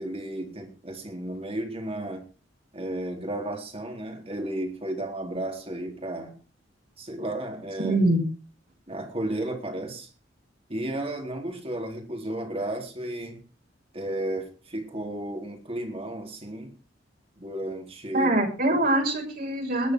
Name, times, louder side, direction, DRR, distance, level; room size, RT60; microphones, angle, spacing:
voice 1, 0.0-2.2 2.7-6.3 7.0-8.0 8.9-10.1 10.7-13.4 13.9-16.7 17.4-18.3, right 1 dB, 30° right, 3 dB, 4.0 m, -33 dB
voice 2, 7.8-8.2 18.1-19.9, right 1 dB, 50° right, 1 dB, 6.1 m, -23 dB
20.0 x 9.4 x 4.8 m, 0.34 s
head